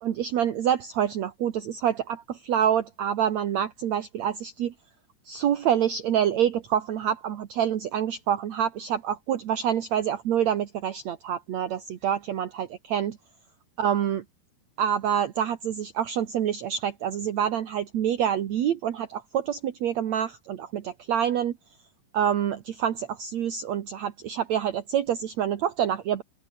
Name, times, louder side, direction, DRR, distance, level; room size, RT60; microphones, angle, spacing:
voice 1, 0.0-2.2 2.5-4.7 5.3-13.2 13.8-14.2 14.8-21.5 22.1-26.2, right 9 dB, 65° right, 1.9 m, -27 dB
open air
omnidirectional pair, 5.1 m